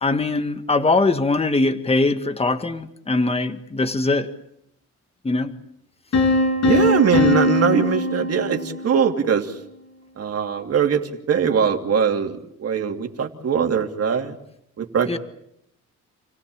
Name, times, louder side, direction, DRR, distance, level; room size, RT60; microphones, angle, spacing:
voice 1, 0.0-4.3 5.2-5.5 7.2-7.3 15.1-15.2, left 3 dB, 20° left, 9 dB, 1.8 m, -21 dB
sound 1, 6.1-9.0, left 2 dB, 60° left, 7.3 m, -21 dB
voice 2, 6.6-9.5 10.2-11.0 11.3-14.4 14.8-15.2, right 7 dB, 55° right, 4 dB, 3.0 m, -21 dB
29.0 x 17.0 x 8.8 m, 0.76 s
cardioid pair, 90°, 30 cm